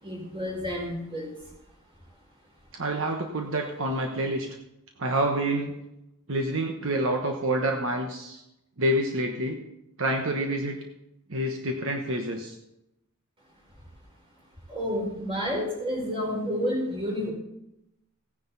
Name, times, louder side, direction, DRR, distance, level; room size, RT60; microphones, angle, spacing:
voice 1, 0.0-1.3 14.7-17.3, equal, 25° right, -2 dB, 4.6 m, -30 dB
voice 2, 2.7-4.5 5.0-5.7 6.3-8.4 8.8-9.6 10.0-10.8 11.3-12.6, right 1 dB, 65° right, 2 dB, 1.2 m, -27 dB
16.5 x 10.0 x 4.1 m, 0.87 s
head